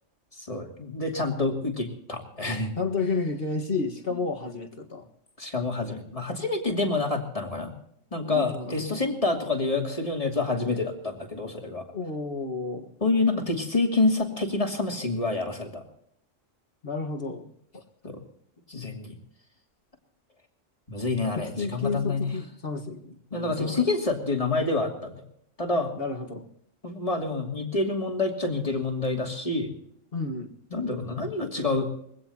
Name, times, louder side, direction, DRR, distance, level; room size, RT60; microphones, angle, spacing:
voice 1, 0.5-2.7 5.4-7.7 8.1-11.8 13.0-15.8 18.0-18.2 18.7-19.1 20.9-22.3 23.3-25.2 25.6-25.9 26.8-29.7 30.7-31.9, left 3 dB, 25° left, 2 dB, 2.8 m, -27 dB
voice 2, 2.8-5.1 8.2-9.1 11.9-12.9 16.8-17.8 21.4-23.9 25.7-26.5 30.1-30.5, left 4 dB, 50° left, 4 dB, 1.8 m, -32 dB
23.0 x 17.0 x 2.9 m, 0.70 s
omnidirectional pair, 1.3 m